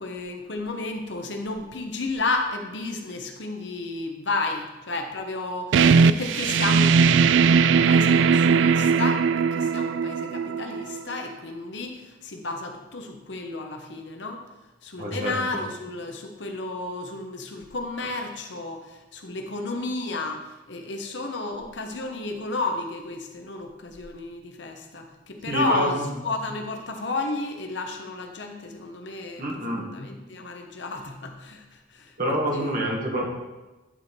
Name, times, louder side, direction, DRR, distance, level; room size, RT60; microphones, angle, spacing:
voice 1, 0.0-14.4 14.8-32.9, left 2 dB, 65° left, 4 dB, 1.0 m, -32 dB
sound 1, 5.7-11.2, right 5 dB, 70° right, 0.3 m, -19 dB
voice 2, 15.0-15.3 25.5-26.1 29.4-29.8 32.2-33.3, equal, 45° right, -2 dB, 1.7 m, -26 dB
10.5 x 4.4 x 4.5 m, 1.1 s
head